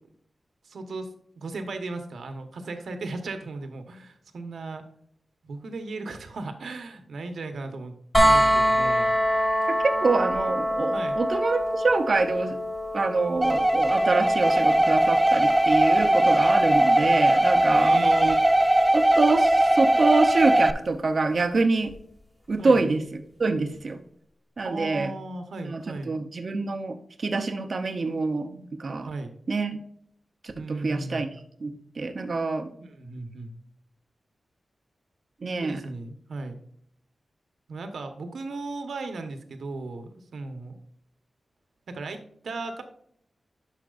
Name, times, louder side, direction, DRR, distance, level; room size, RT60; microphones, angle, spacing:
voice 1, 0.6-1.1 1.3-4.8 5.4-7.9 8.2-9.1 10.9-11.2 17.7-18.5 22.6-22.8 24.6-26.1 29.0-29.3 30.5-31.2 32.8-33.5 35.6-36.6 37.7-40.8 41.9-42.8, right 3 dB, 85° right, 7 dB, 1.1 m, -36 dB
sound 1, 8.1-20.0 21.9-22.0, equal, 20° left, 2.1 m, -27 dB
voice 2, 9.8-12.6 12.9-18.4 18.9-21.9 22.5-23.0 23.4-24.0 24.6-25.1 25.6-29.1 29.5-29.8 30.4-31.3 31.6-32.7 35.4-35.8, right 3 dB, 45° right, 6 dB, 0.7 m, -26 dB
sound 2, 13.4-20.7, right 1 dB, 10° right, 0.3 m, -20 dB
10.5 x 5.9 x 2.5 m, 0.67 s
wide cardioid pair, 150°, 0 cm